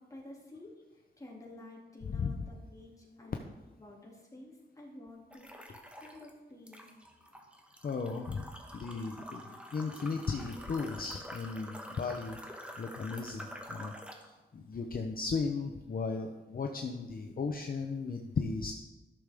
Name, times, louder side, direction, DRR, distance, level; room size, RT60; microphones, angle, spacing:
voice 1, 0.0-3.4 3.8-6.9, left 2 dB, 15° left, -3 dB, 2.5 m, -51 dB
voice 2, 2.1-2.4 7.8-12.4 12.8-18.7, left 4 dB, 45° left, 3 dB, 0.7 m, -36 dB
sound 1, 5.3-6.3 6.7-14.3, equal, 5° right, 1.1 m, -47 dB
13.0 x 6.6 x 3.5 m, 1.1 s
wide cardioid pair, 115°, 20 cm